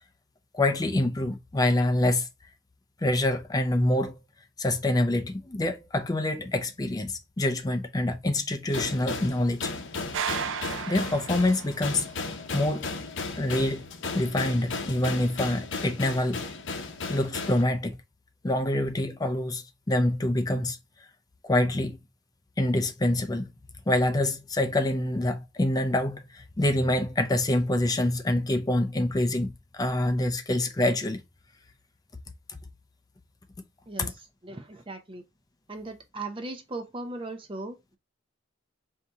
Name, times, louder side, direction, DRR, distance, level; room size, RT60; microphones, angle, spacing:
voice 1, 0.5-2.3 3.0-4.2 4.6-9.7 10.9-12.1 12.5-12.9 13.3-13.9 14.1-16.4 17.1-18.0 18.4-20.8 21.4-22.0 22.6-23.5 23.9-31.2 32.5-32.6 34.0-34.1, left 1 dB, 20° left, 0.5 m, -26 dB
sound 1, 8.7-17.6, left 4 dB, 65° left, 0.7 m, -35 dB
sound 2, 10.1-12.1, right 7 dB, 70° right, 0.4 m, -34 dB
voice 2, 34.4-35.2 35.7-38.0, right 2 dB, 25° right, 0.7 m, -38 dB
4.2 x 2.8 x 3.5 m
head